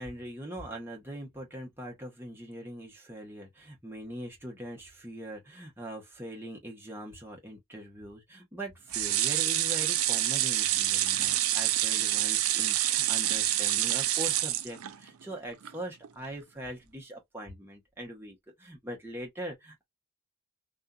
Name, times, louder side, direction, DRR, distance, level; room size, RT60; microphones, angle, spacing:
voice 1, 0.0-19.8, right 1 dB, 10° right, 1.0 m, -42 dB
sound 1, 8.9-15.2 15.6-15.7 16.0-16.1, right 13 dB, 75° right, 0.5 m, -27 dB
2.6 x 2.4 x 2.3 m
head